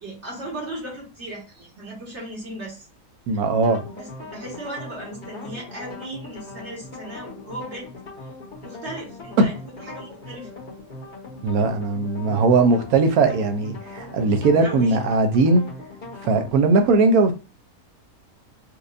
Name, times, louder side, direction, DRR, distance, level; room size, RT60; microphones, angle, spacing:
voice 1, 0.0-2.9 3.3-3.4 3.9-7.9 8.6-10.5 14.6-15.0, right 1 dB, 50° right, 1.8 m, -36 dB
voice 2, 3.3-3.8 9.4-9.5 11.4-15.7 16.2-17.3, right 3 dB, 80° right, 1.2 m, -19 dB
sound 1, 3.5-16.5, left 2 dB, 45° left, 1.2 m, -40 dB
4.4 x 2.4 x 2.5 m
omnidirectional pair, 1.5 m